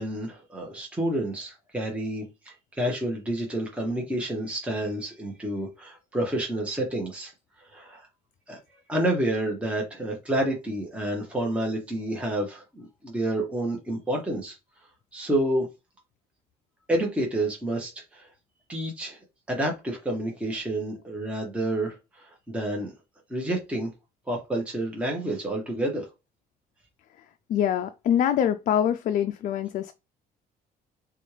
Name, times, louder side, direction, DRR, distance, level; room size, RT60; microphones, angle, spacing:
voice 1, 0.0-7.3 7.7-8.1 8.5-8.6 8.9-14.6 15.1-15.7 16.9-18.3 18.7-19.2 19.5-22.9 23.3-23.9 24.3-26.1, right 1 dB, 5° right, 0.9 m, -29 dB
voice 2, 27.5-29.9, left 9 dB, 50° left, 0.4 m, -24 dB
4.1 x 2.3 x 3.2 m
cardioid pair, 110°, 17 cm